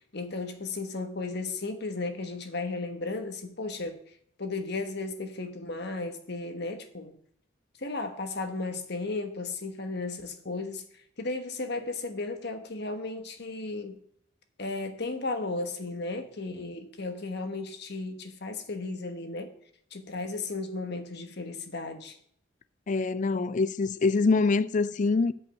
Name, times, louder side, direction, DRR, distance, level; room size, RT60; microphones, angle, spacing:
voice 1, 0.1-4.0 4.4-7.2 7.8-14.0 14.6-19.5 19.9-22.2, left 3 dB, 55° left, 1.2 m, -35 dB
voice 2, 22.9-25.3, left 3 dB, 40° left, 0.3 m, -25 dB
8.4 x 5.5 x 7.5 m
head